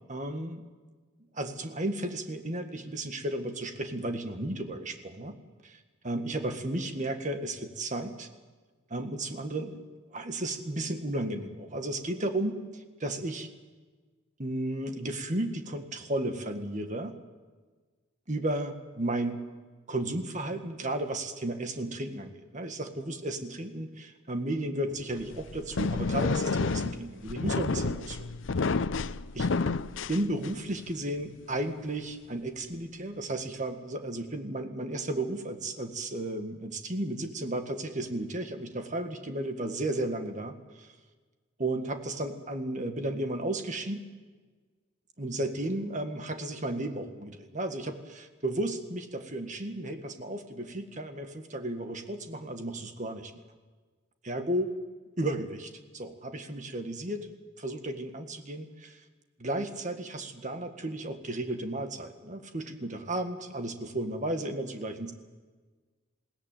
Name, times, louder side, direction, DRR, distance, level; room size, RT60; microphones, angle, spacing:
voice 1, 0.1-0.6 1.3-5.4 5.6-8.3 8.9-9.9 10.1-13.5 14.4-17.2 18.3-19.4 19.9-28.3 28.6-28.7 29.3-29.5 30.1-40.9 41.6-44.0 45.2-53.3 54.2-54.7 55.2-59.0 59.4-65.1, right 1 dB, 40° right, 6 dB, 1.9 m, -34 dB
sound 1, 25.1-30.8, left 4 dB, 75° left, 0.6 m, -30 dB
21.0 x 17.0 x 9.1 m, 1.4 s
head